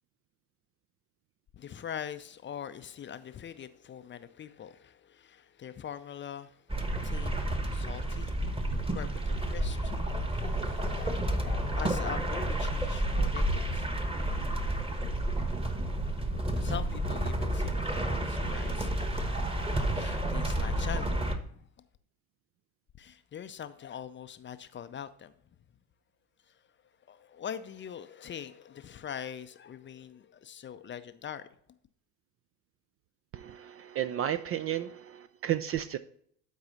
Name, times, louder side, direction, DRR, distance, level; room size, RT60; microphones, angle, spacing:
voice 1, 1.5-6.6 7.0-8.3 8.8-13.9 16.5-19.0 19.5-21.7 23.0-25.3 26.5-26.6 27.1-31.5, left 8 dB, 25° left, 0.5 m, -43 dB
sound 1, 6.7-21.4, right 1 dB, 10° right, 1.2 m, -30 dB
voice 2, 33.3-36.0, right 11 dB, 30° right, 0.4 m, -33 dB
12.0 x 4.8 x 4.1 m
figure-of-eight pair, 60°, 49 cm